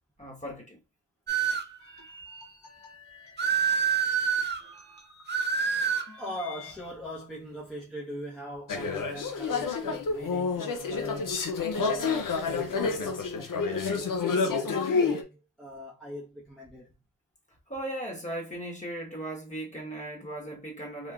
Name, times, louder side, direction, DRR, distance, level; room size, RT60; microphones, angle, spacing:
voice 1, 0.2-0.8 17.7-21.1, right 1 dB, 25° left, 1.2 m, -37 dB
sound 1, 1.3-1.8 3.4-4.6 5.3-6.1, right 7 dB, 35° right, 0.4 m, -26 dB
sound 2, 1.8-6.9, left 2 dB, 65° left, 1.2 m, -50 dB
voice 2, 6.2-11.4 11.7-16.9, equal, ahead, 0.8 m, -41 dB
sound 3, 8.7-15.2, left 5 dB, 85° left, 0.5 m, -29 dB
3.0 x 2.2 x 2.4 m
wide cardioid pair, 45°, 31 cm